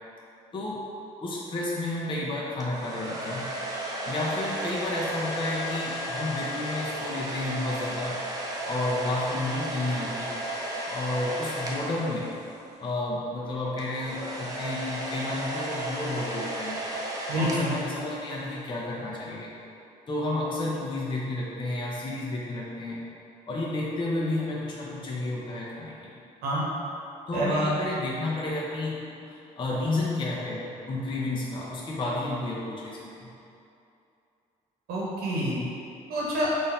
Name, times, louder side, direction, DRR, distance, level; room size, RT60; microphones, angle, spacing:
voice 1, 0.5-0.9 1.2-3.5 4.0-8.2 8.7-10.4 10.9-12.3 12.8-16.8 17.4-19.5 20.1-23.0 23.5-26.2 27.3-33.3, left 2 dB, 30° left, -5 dB, 0.7 m, -31 dB
sound 1, 2.6-12.7 13.8-18.5, right 1 dB, 25° right, 0.7 m, -34 dB
voice 2, 17.3-17.7 26.4-26.6 27.3-27.6 34.9-35.6 36.1-36.5, equal, 80° right, -5 dB, 0.9 m, -27 dB
3.8 x 2.6 x 4.2 m, 2.6 s
supercardioid pair, 75°, 16 cm